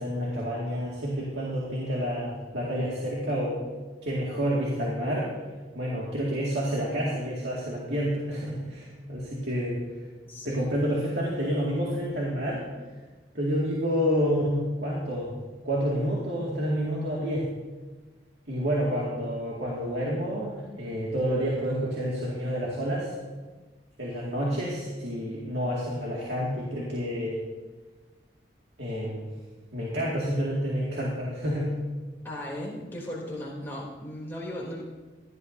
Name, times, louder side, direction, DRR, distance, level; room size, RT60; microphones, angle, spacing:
voice 1, 0.0-3.6 4.0-5.3 5.7-10.1 10.4-12.7 13.3-15.3 15.6-17.5 18.5-23.2 24.0-27.4 28.8-29.3 29.7-31.7, equal, 70° right, -5 dB, 2.2 m, -29 dB
voice 2, 10.2-10.8 32.2-34.8, left 1 dB, 10° left, -5 dB, 3.2 m, -36 dB
16.5 x 12.0 x 2.7 m, 1.3 s
head